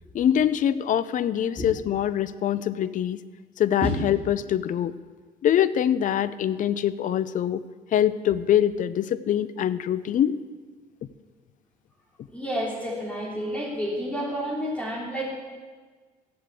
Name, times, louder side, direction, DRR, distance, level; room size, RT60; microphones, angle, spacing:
voice 1, 0.1-3.2 3.6-4.9 5.4-7.6 7.9-10.4, left 10 dB, 50° left, 15 dB, 0.6 m, -24 dB
voice 2, 12.3-15.2, equal, 10° left, -4 dB, 3.6 m, -29 dB
15.5 x 7.7 x 8.4 m, 1.4 s
cardioid pair, 110°, 17 cm